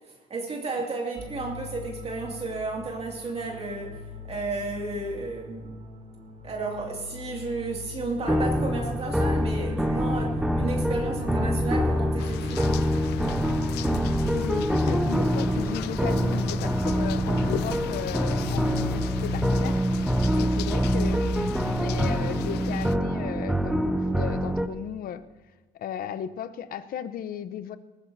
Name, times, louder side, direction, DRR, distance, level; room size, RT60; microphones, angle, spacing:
voice 1, 0.3-4.0 4.2-5.7 6.4-12.7, right 3 dB, 35° right, 0 dB, 2.5 m, -33 dB
sound 1, 1.2-19.5, left 1 dB, 60° right, 3.8 m, -39 dB
sound 2, 8.3-24.7, equal, 5° right, 0.7 m, -25 dB
sound 3, 12.2-22.9, left 14 dB, 80° left, 0.4 m, -37 dB
voice 2, 14.3-20.1 20.4-25.2 25.7-27.8, left 9 dB, 60° left, 13 dB, 0.9 m, -35 dB
20.0 x 14.5 x 2.8 m, 1.3 s
cardioid pair, 110°, 17 cm